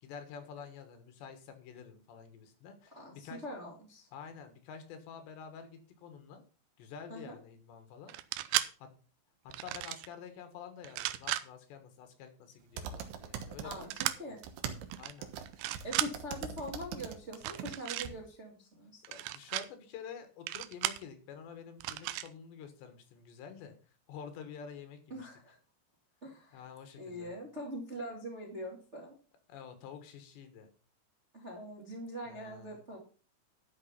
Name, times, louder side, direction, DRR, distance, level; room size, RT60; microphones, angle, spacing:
voice 1, 0.0-3.4 4.1-6.4 6.8-8.2 8.6-8.9 9.4-13.9 14.3-14.4 15.0-15.3 19.1-23.8 24.1-25.3 26.5-27.3 29.5-30.7 32.3-32.8, left 7 dB, 75° left, 8 dB, 3.6 m, -49 dB
voice 2, 2.9-4.1 7.1-7.4 13.6-14.4 15.8-19.0 25.1-25.6 26.2-26.6 27.0-29.1 31.3-33.0, equal, 25° right, -1 dB, 1.5 m, -43 dB
sound 1, 8.1-8.7 9.5-10.1 10.8-11.4 13.9-14.2 14.9-15.1 15.5-16.1 17.4-18.1 19.1-19.7 20.5-21.0 21.8-22.3, right 15 dB, 85° right, 3.0 m, -34 dB
sound 2, 12.8-14.1 14.4-17.7 18.0-18.1, right 8 dB, 70° right, 2.9 m, -41 dB
12.0 x 6.0 x 5.7 m, 0.38 s
omnidirectional pair, 5.3 m